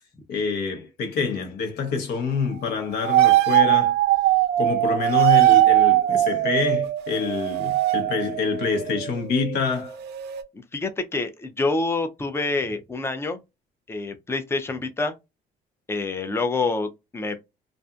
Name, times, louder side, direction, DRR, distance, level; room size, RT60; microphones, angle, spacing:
voice 1, 0.3-3.9 4.6-10.0, left 5 dB, 75° left, 1.0 m, -26 dB
sound 1, 3.0-9.6 9.9-10.4, right 14 dB, 80° right, 0.4 m, -20 dB
voice 2, 10.5-13.4 13.9-15.1 15.9-17.4, left 3 dB, 15° left, 0.5 m, -27 dB
2.6 x 2.5 x 2.2 m
cardioid pair, 110°, 17 cm